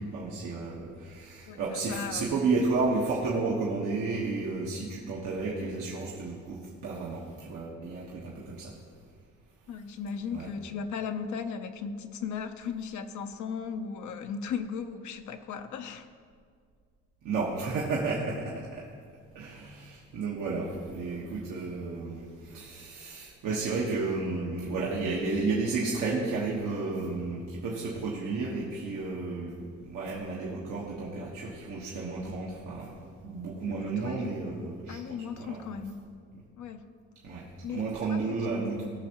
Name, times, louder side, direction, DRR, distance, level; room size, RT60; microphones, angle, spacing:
voice 1, 0.1-8.7 10.3-10.5 17.2-18.8 19.3-32.9 33.2-35.0 35.4-35.6 37.2-37.4 37.7-38.8, right 3 dB, 90° right, -5 dB, 1.5 m, -32 dB
voice 2, 1.5-2.3 9.7-16.1 33.7-33.8 34.0-34.3 34.9-36.0 36.6-36.8 37.6-37.8 38.1-38.3, left 6 dB, 75° left, 7 dB, 0.7 m, -36 dB
18.5 x 6.4 x 3.0 m, 2.1 s
cardioid pair, 90°, 30 cm